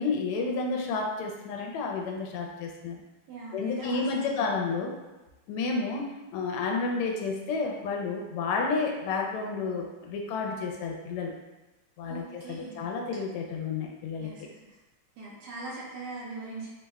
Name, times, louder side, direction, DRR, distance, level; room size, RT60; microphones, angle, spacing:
voice 1, 0.0-3.0 3.5-4.9 5.5-11.3 12.0-14.5, left 4 dB, 85° left, 1 dB, 1.5 m, -31 dB
voice 2, 3.3-4.4 12.0-12.9 14.2-14.7 15.2-16.7, right 3 dB, 70° right, -6 dB, 1.0 m, -41 dB
3.6 x 2.1 x 3.4 m, 1.1 s
omnidirectional pair, 2.4 m